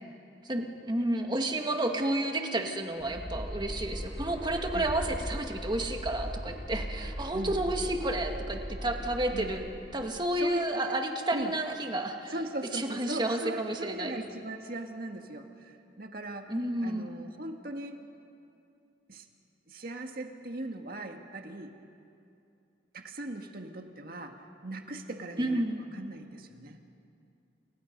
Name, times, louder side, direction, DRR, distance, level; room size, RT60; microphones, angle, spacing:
voice 1, 0.4-9.7 9.9-12.3 12.7-14.1 16.5-17.1 25.4-25.8, right 1 dB, 25° right, 3 dB, 2.0 m, -31 dB
sound 1, 3.0-10.2, equal, 25° left, 3.9 m, -38 dB
voice 2, 10.3-10.6 10.9-11.0 11.3-11.6 12.3-16.6 16.8-18.0 19.1-19.3 19.7-21.8 22.9-26.8, right 1 dB, 55° right, 4 dB, 1.9 m, -39 dB
29.5 x 29.5 x 5.4 m, 2.6 s
head